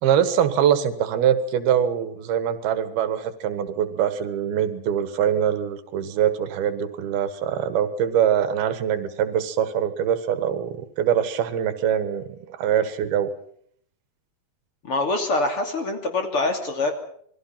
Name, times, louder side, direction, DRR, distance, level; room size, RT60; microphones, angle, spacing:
voice 1, 0.0-13.3, right 9 dB, 90° right, 11 dB, 3.5 m, -23 dB
voice 2, 14.8-16.9, left 2 dB, 40° left, 4 dB, 3.3 m, -24 dB
27.5 x 21.5 x 5.8 m, 0.64 s
omnidirectional pair, 4.3 m